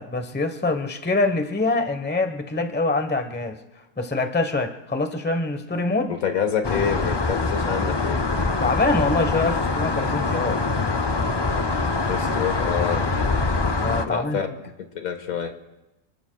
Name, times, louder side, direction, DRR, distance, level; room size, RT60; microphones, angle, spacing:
voice 1, 0.0-3.6 4.0-6.2 8.6-10.6 13.8-14.4, left 3 dB, 10° left, 6 dB, 0.9 m, -24 dB
voice 2, 6.1-8.2 12.1-13.1 14.0-14.5 14.8-15.5, left 8 dB, 85° left, 6 dB, 1.9 m, -27 dB
sound 1, 6.6-14.1, left 3 dB, 45° left, 0.3 m, -24 dB
29.0 x 21.0 x 2.3 m, 0.98 s
omnidirectional pair, 1.4 m